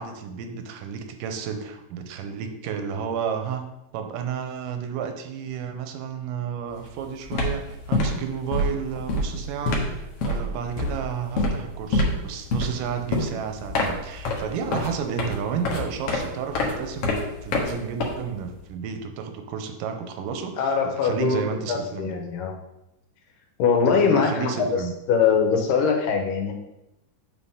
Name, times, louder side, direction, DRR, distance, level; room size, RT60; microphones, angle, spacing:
voice 1, 0.0-22.2 23.8-24.9, right 7 dB, 90° right, 7 dB, 2.3 m, -32 dB
sound 1, 6.7-6.9 7.2-18.6, left 2 dB, 60° left, 1.7 m, -27 dB
voice 2, 20.6-22.6 23.6-24.7 25.1-26.5, left 6 dB, 80° left, 3 dB, 2.6 m, -22 dB
8.2 x 5.5 x 3.7 m, 0.88 s
omnidirectional pair, 3.9 m